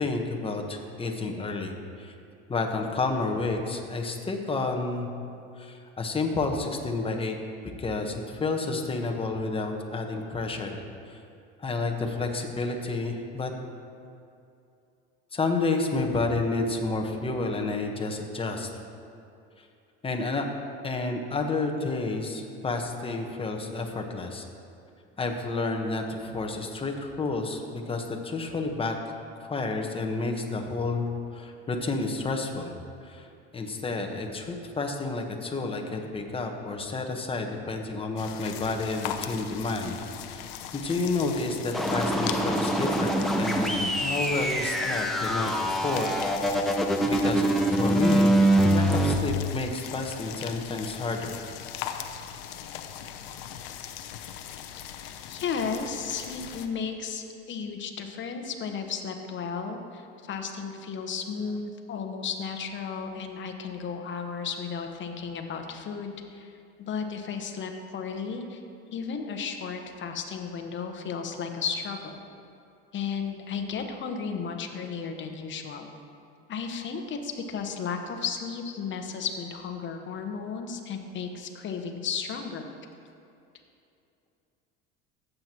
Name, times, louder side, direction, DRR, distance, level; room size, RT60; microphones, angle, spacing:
voice 1, 0.0-2.1 2.5-5.1 5.6-7.4 7.8-10.8 11.1-11.2 11.6-13.5 15.3-18.7 19.6-19.7 20.0-20.5 20.8-24.5 25.2-29.0 29.4-31.1 31.3-32.8 33.0-33.3 33.5-40.0 40.3-46.2 46.5-46.7 47.0-48.3 48.7-51.4, left 3 dB, 20° left, 2 dB, 1.2 m, -30 dB
sound 1, 38.2-56.7, left 9 dB, 75° left, 0.7 m, -40 dB
sound 2, 41.7-49.1, right 1 dB, ahead, 0.8 m, -24 dB
voice 2, 55.3-66.5 66.8-68.6 68.9-72.2 72.9-75.9 76.5-82.7, left 6 dB, 40° left, 5 dB, 1.1 m, -34 dB
15.0 x 7.9 x 3.0 m, 2.6 s
supercardioid pair, 105°, 30 cm